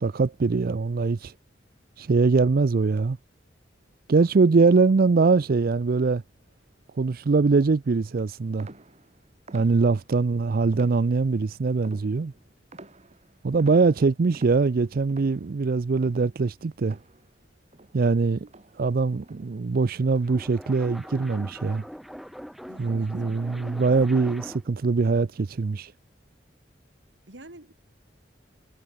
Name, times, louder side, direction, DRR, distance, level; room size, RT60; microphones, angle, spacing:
voice 1, 0.0-1.3 2.0-3.2 4.1-6.2 7.0-8.7 9.5-12.3 13.4-17.0 17.9-18.5 18.8-21.8 22.8-25.9, right 4 dB, 55° right, 0.5 m, -22 dB
sound 1, 8.6-10.2 10.7-11.4 11.8-17.5 17.7-19.8 20.1-20.5 21.0-21.5, right 2 dB, 40° right, 2.0 m, -50 dB
voice 2, 13.5-14.1 22.7-23.2 23.4-23.5 23.8-24.2 27.3-27.7, right 1 dB, 85° right, 3.2 m, -48 dB
sound 2, 20.0-24.8, equal, ahead, 1.0 m, -42 dB
head